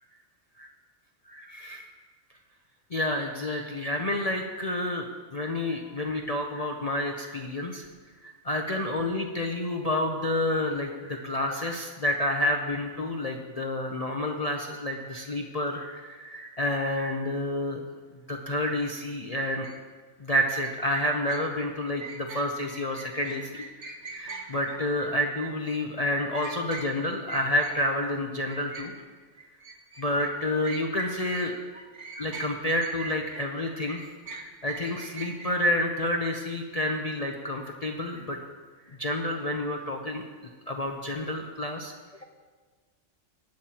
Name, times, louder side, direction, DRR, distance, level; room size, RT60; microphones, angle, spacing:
voice 1, 1.3-1.9 2.9-7.9 8.2-17.8 18.3-19.7 20.2-28.9 30.0-31.8 32.1-38.4 38.9-40.2 40.7-42.2, left 1 dB, 35° left, 2 dB, 0.7 m, -29 dB
sound 1, 19.6-19.8 20.6-28.1 28.5-31.5 31.7-35.6, right 3 dB, 65° right, 1.6 m, -41 dB
18.0 x 10.0 x 2.9 m, 1.4 s
omnidirectional pair, 1.3 m